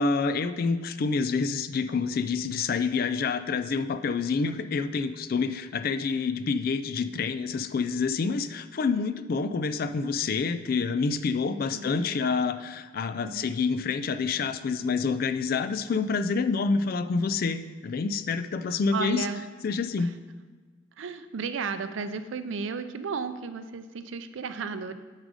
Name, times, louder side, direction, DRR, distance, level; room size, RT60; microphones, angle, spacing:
voice 1, 0.0-19.3 19.6-20.1, left 4 dB, 45° left, 10 dB, 0.3 m, -27 dB
voice 2, 18.9-19.4 20.0-20.1 21.0-24.9, right 5 dB, 70° right, 11 dB, 0.5 m, -33 dB
7.4 x 4.9 x 4.9 m, 1.4 s
head